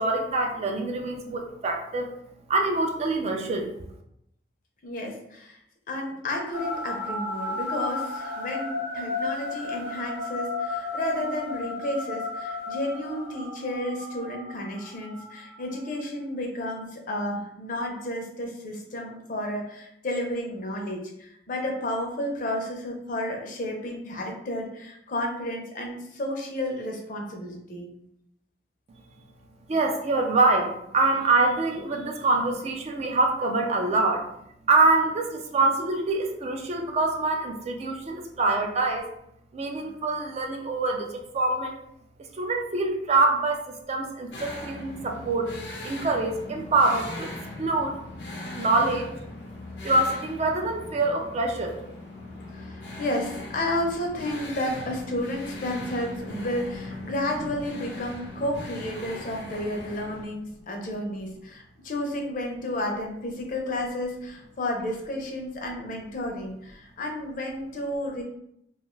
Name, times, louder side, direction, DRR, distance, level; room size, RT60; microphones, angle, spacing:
voice 1, 0.0-2.1 2.5-3.8 29.7-34.3 34.7-39.1 39.5-41.7 42.3-45.5 45.8-47.3 47.6-48.0 48.6-49.1 49.8-51.8, right 2 dB, 40° right, 3 dB, 0.4 m, -25 dB
voice 2, 4.8-5.6 5.9-27.9 52.5-68.2, left 1 dB, 50° left, 1 dB, 0.6 m, -32 dB
sound 1, 6.5-16.0, left 3 dB, 70° right, 0.9 m, -34 dB
sound 2, 44.3-60.3, left 2 dB, 85° left, 0.7 m, -39 dB
2.3 x 2.3 x 3.0 m, 0.76 s
head